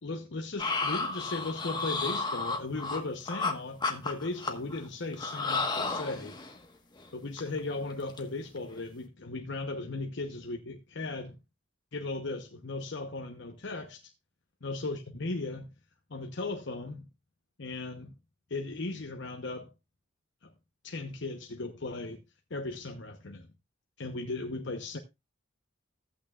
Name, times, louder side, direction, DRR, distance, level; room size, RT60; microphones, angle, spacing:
voice 1, 0.0-6.4 7.1-11.3 11.9-14.1 14.6-15.7 16.1-17.1 17.6-18.1 18.5-19.7 20.4-20.5 20.8-22.2 22.5-23.5 24.0-25.0, left 3 dB, 60° left, 0.9 m, -37 dB
sound 1, 0.6-3.5 3.8-4.8 5.1-6.6 7.0-7.1 7.4-7.6 7.9-8.2 8.6-8.8, left 3 dB, 20° left, 1.3 m, -32 dB
14.5 x 8.7 x 2.4 m
head